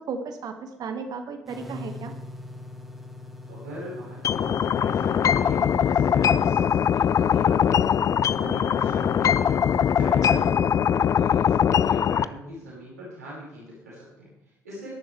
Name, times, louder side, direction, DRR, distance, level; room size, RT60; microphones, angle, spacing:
voice 1, 0.1-2.1 10.3-10.5, right 5 dB, 50° right, 6 dB, 2.0 m, -35 dB
sound 1, 1.5-10.4, left 2 dB, ahead, 2.6 m, -43 dB
voice 2, 3.4-8.0 8.3-9.6 10.0-14.9, equal, 80° right, -8 dB, 5.6 m, -40 dB
sound 2, 4.2-12.2, left 8 dB, 40° left, 0.5 m, -21 dB
18.0 x 11.0 x 3.4 m, 0.96 s
figure-of-eight pair, 50°, 9 cm